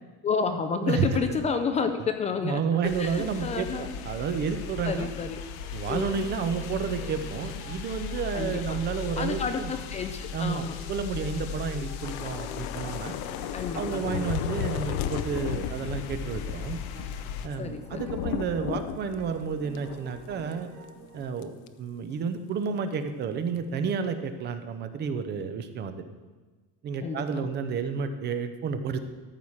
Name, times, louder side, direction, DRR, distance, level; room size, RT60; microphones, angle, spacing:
voice 1, 0.2-2.6 3.0-3.9 4.8-5.4 5.9-6.4 8.3-8.8 9.2-10.8 13.5-14.3 17.6-18.1 27.0-27.5, left 5 dB, 20° left, 7 dB, 0.4 m, -30 dB
sound 1, 2.3-21.2, right 4 dB, 70° right, 2.0 m, -50 dB
voice 2, 2.4-5.1 5.7-9.7 10.3-13.2 13.7-16.8 17.4-20.7 21.1-26.0 26.8-29.0, right 6 dB, 35° right, 9 dB, 0.7 m, -31 dB
sound 2, 2.8-17.5, left 8 dB, 85° left, 1.0 m, -38 dB
Thunder / Rain, 12.0-20.6 20.9-21.1 21.4-21.7, left 9 dB, 65° left, 0.7 m, -35 dB
13.5 x 4.8 x 7.2 m, 1.3 s
cardioid pair, 170°, 31 cm